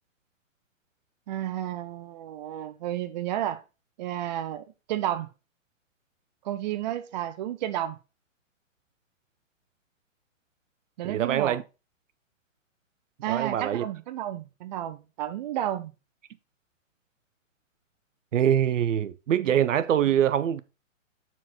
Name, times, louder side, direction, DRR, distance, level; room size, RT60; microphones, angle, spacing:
voice 1, 1.3-3.6 4.0-5.3 6.4-8.0 11.0-11.6 13.2-15.9 19.4-19.5, right 12 dB, 35° right, 0.6 m, -32 dB
voice 2, 11.0-11.6 13.3-13.8 18.3-20.6, right 10 dB, 70° right, 0.7 m, -24 dB
7.7 x 4.5 x 4.2 m
hypercardioid pair, 140°, 39 cm